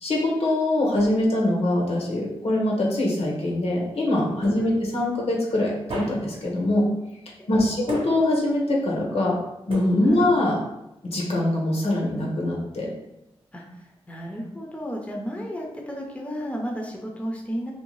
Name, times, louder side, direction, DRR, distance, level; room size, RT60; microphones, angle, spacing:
voice 1, 0.0-6.9 7.5-9.4 9.7-10.6 11.0-12.9, left 1 dB, 75° left, -3 dB, 0.7 m, -23 dB
voice 2, 4.4-4.8 7.5-7.8 10.0-10.3 13.5-13.6 14.1-17.7, equal, 10° left, -1 dB, 0.5 m, -32 dB
sound 1, 4.4-5.0 5.9-6.5 7.9-8.5 9.7-10.4, right 1 dB, 55° right, 0.7 m, -34 dB
2.6 x 2.1 x 3.0 m, 0.90 s
wide cardioid pair, 80°, 11 cm